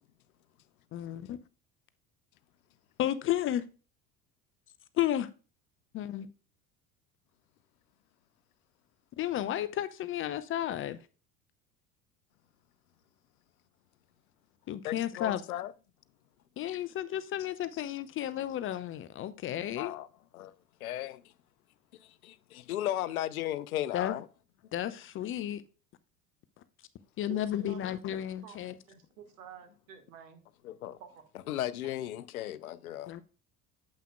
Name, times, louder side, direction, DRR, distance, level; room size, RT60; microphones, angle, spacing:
voice 1, 0.9-1.4 3.0-3.6 5.0-5.3 5.9-6.3 9.2-11.0 14.7-15.4 16.6-19.9 23.9-24.2 24.7-25.6 27.2-28.7 33.1-33.2, left 12 dB, 30° left, 0.5 m, -32 dB
voice 2, 14.8-15.7 19.8-20.1 20.3-20.5 20.8-21.2 22.0-24.3 30.6-31.0 31.5-33.1, left 13 dB, 70° left, 0.6 m, -35 dB
voice 3, 27.3-27.8 28.1-30.4 31.0-31.2, right 8 dB, 60° right, 1.8 m, -50 dB
9.0 x 7.6 x 2.3 m
figure-of-eight pair, 65°, 45 cm